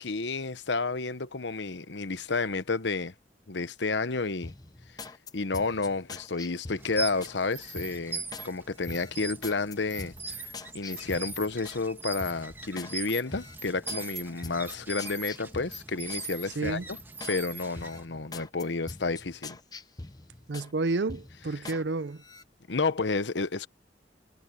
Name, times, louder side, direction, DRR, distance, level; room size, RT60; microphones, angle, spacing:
voice 1, 0.0-3.1 3.5-4.5 5.3-10.5 10.7-17.0 17.3-19.6 22.7-23.7, left 3 dB, 80° left, 1.0 m, -31 dB
sound 1, 4.4-7.4 7.8-8.5 8.8-11.8 12.2-12.9 13.3-16.3 16.6-17.4 17.7-20.7 21.1-21.8 22.2-22.4, left 3 dB, 20° left, 0.8 m, -44 dB
sound 2, 6.8-18.1, right 3 dB, 10° right, 1.6 m, -40 dB
voice 2, 16.6-16.9 20.5-22.2, right 3 dB, 75° right, 0.6 m, -30 dB
head